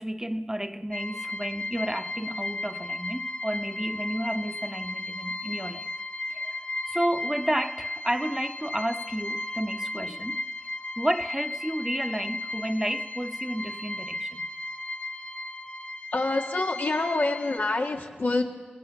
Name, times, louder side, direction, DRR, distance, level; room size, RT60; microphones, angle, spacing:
voice 1, 0.0-5.9 6.3-6.6 6.9-10.4 11.0-14.5, right 1 dB, 15° right, 0.9 m, -31 dB
sound 1, 0.9-17.6, left 2 dB, 35° left, 1.2 m, -35 dB
voice 2, 16.1-18.4, left 2 dB, 85° left, 2.0 m, -26 dB
26.0 x 17.0 x 7.0 m
wide cardioid pair, 45°, 3 cm